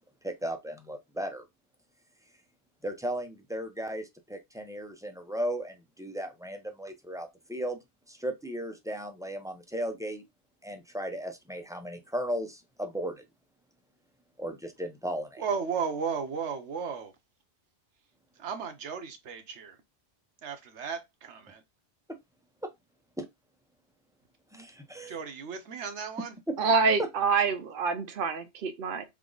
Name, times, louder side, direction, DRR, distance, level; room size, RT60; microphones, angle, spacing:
voice 1, 0.2-1.4 2.8-7.8 8.1-10.2 10.6-13.2 14.4-15.4 23.2-23.3 24.5-25.1 26.5-26.6 27.0-27.1, equal, 5° right, 0.4 m, -35 dB
voice 2, 15.4-17.1 18.4-19.8 20.4-21.6 25.1-26.4, right 6 dB, 90° right, 1.2 m, -35 dB
voice 3, 26.6-29.0, right 5 dB, 60° right, 0.7 m, -26 dB
3.6 x 3.5 x 3.8 m
omnidirectional pair, 1.1 m